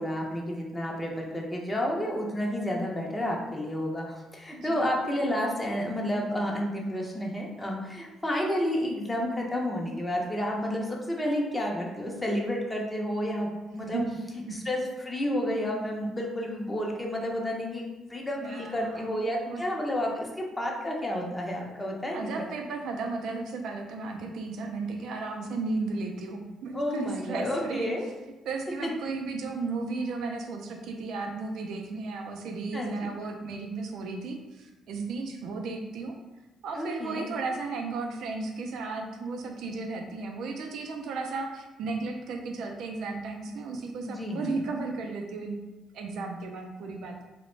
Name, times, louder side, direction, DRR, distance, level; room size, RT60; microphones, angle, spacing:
voice 1, 0.0-13.5 13.7-14.0 14.5-17.8 18.1-22.3 26.7-28.1 32.7-33.1 36.7-37.3 44.1-44.6, left 1 dB, 20° left, -1 dB, 0.6 m, -30 dB
voice 2, 4.5-4.9 13.8-14.2 14.4-14.6 18.4-19.6 22.1-27.9 28.5-36.2 36.6-45.6 45.9-47.2, right 3 dB, 75° right, 3 dB, 0.3 m, -34 dB
2.4 x 2.1 x 3.0 m, 1.1 s
supercardioid pair, 70°, 0 cm